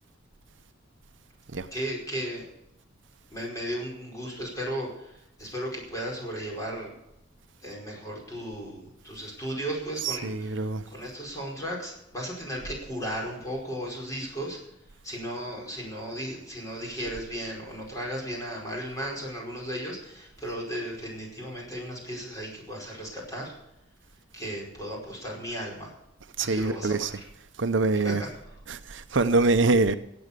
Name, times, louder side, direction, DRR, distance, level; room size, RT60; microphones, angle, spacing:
voice 1, 1.7-2.5 3.3-7.0 7.6-14.6 15.0-23.5 24.3-25.9 26.4-27.2 28.0-28.3, equal, 15° left, 5.0 m, -35 dB
voice 2, 10.0-10.8 26.4-27.1 27.6-28.2 28.7-29.9, right 3 dB, 70° right, 0.8 m, -24 dB
16.0 x 8.7 x 6.8 m
head